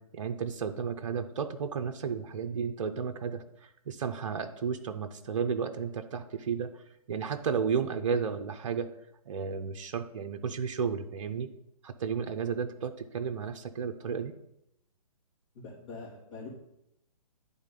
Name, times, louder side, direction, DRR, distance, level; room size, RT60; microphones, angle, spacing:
voice 1, 0.0-8.9 9.3-11.5 11.8-14.3, right 6 dB, 55° right, 8 dB, 0.6 m, -33 dB
voice 2, 15.5-16.5, left 4 dB, 55° left, -5 dB, 2.2 m, -44 dB
10.5 x 3.7 x 3.8 m, 0.81 s
figure-of-eight pair, 130°, 20 cm